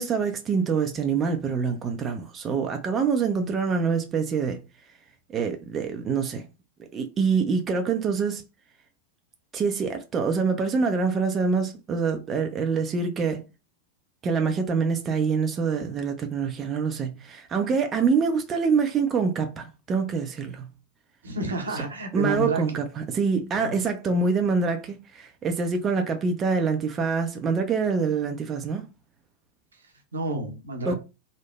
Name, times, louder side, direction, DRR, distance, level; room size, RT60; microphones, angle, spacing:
voice 1, 0.0-4.6 5.3-6.4 6.9-8.4 9.5-13.4 14.2-20.7 22.1-28.8 30.9-31.0, right 5 dB, 25° right, 0.4 m, -25 dB
voice 2, 21.2-22.8 23.5-23.8 29.7-31.0, right 2 dB, 70° right, 0.7 m, -30 dB
3.1 x 2.0 x 2.3 m
figure-of-eight pair, 90°, 0 cm